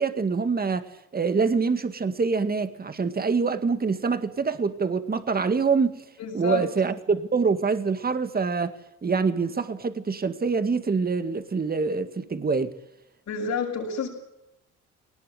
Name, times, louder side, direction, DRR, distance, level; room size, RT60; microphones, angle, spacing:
voice 1, 0.0-6.0 6.3-8.7 9.0-12.8, right 4 dB, 30° right, 2.0 m, -25 dB
voice 2, 6.2-6.6 13.3-14.1, left 5 dB, 60° left, 7.2 m, -29 dB
20.0 x 19.0 x 9.5 m
cardioid pair, 90°, 30 cm